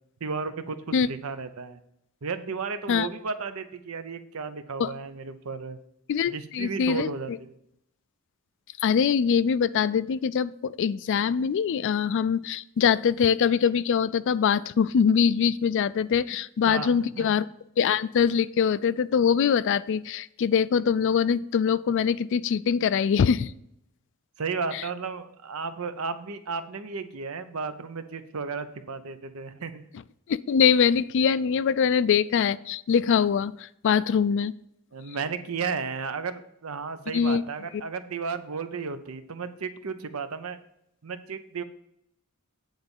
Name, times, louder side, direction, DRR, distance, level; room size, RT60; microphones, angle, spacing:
voice 1, 0.2-1.8 2.2-5.8 6.3-7.5 16.7-17.3 24.4-29.8 34.9-40.6 41.0-41.6, right 5 dB, 75° right, 11 dB, 0.7 m, -34 dB
voice 2, 6.1-7.4 8.8-17.5 17.8-23.5 24.7-24.8 30.3-34.5 37.1-37.4, left 7 dB, 60° left, 17 dB, 0.3 m, -23 dB
9.1 x 3.9 x 7.0 m, 0.79 s
head